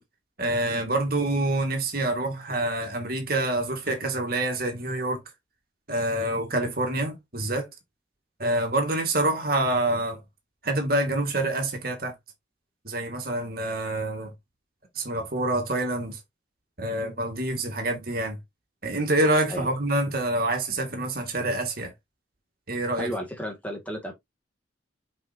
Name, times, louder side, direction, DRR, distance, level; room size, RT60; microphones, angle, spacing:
voice 1, 0.4-5.2 5.9-7.7 8.4-10.2 10.6-12.1 12.8-14.3 15.0-16.2 16.8-18.4 18.8-21.9 22.7-23.1, right 1 dB, 50° right, 2.3 m, -26 dB
voice 2, 23.0-24.1, equal, 10° left, 2.0 m, -33 dB
7.6 x 5.1 x 2.6 m
head